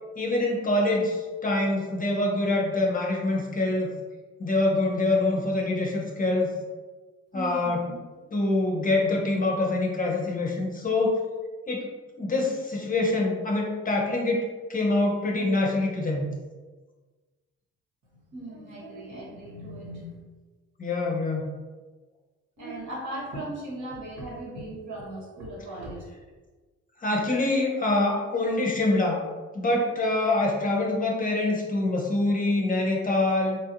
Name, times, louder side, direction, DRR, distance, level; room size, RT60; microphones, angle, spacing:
voice 1, 0.2-3.9 4.4-6.5 7.3-7.8 8.3-11.2 11.7-11.9 12.2-16.2 20.8-21.5 27.0-29.2 29.5-33.6, left 2 dB, 30° left, -1 dB, 0.6 m, -25 dB
voice 2, 7.3-8.0 18.1-20.2 22.6-26.1, right 1 dB, 65° right, -5 dB, 1.3 m, -38 dB
3.2 x 2.4 x 2.8 m, 1.3 s
cardioid pair, 90°, 30 cm